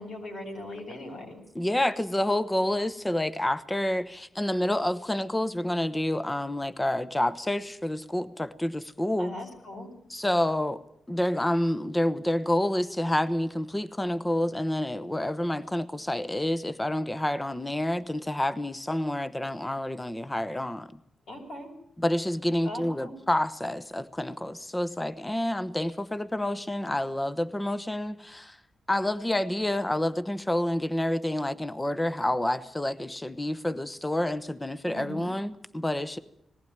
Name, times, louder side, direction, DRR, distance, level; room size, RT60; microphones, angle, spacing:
voice 1, 0.0-1.4 9.2-9.9 21.3-21.7 22.6-23.1 34.9-35.3, left 1 dB, 75° left, 7.0 m, -39 dB
voice 2, 1.5-9.3 10.1-10.8 11.1-20.9 22.0-28.6 28.9-36.2, left 1 dB, 10° left, 0.9 m, -28 dB
20.0 x 15.5 x 9.5 m
cardioid pair, 95°, 0 cm